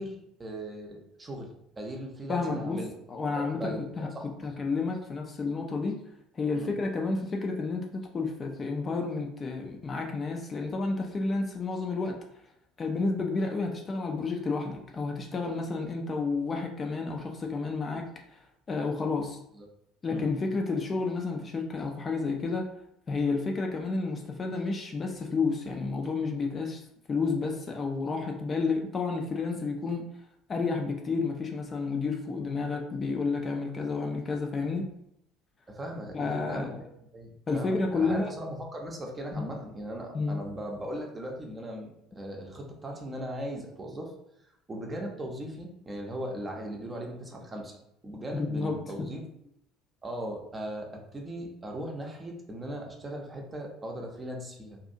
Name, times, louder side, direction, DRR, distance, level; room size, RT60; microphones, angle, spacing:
voice 1, 0.0-1.5 1.8-2.9 3.2-4.5 6.5-6.7 19.6-19.7 20.1-20.3 32.4-32.5 35.7-36.9 37.1-44.1 44.7-47.7 48.0-49.2 50.0-54.8, equal, 25° right, 1 dB, 0.6 m, -38 dB
voice 2, 2.3-2.8 3.1-4.1 4.4-6.0 6.3-12.2 12.8-18.1 18.7-19.4 20.0-22.7 23.1-26.8 27.1-30.0 30.5-34.9 36.1-36.8 37.5-38.3 39.3-39.4 40.1-40.4 48.3-48.9, left 4 dB, 30° left, 2 dB, 0.4 m, -30 dB
2.5 x 2.4 x 2.6 m, 0.78 s
figure-of-eight pair, 60°, 0 cm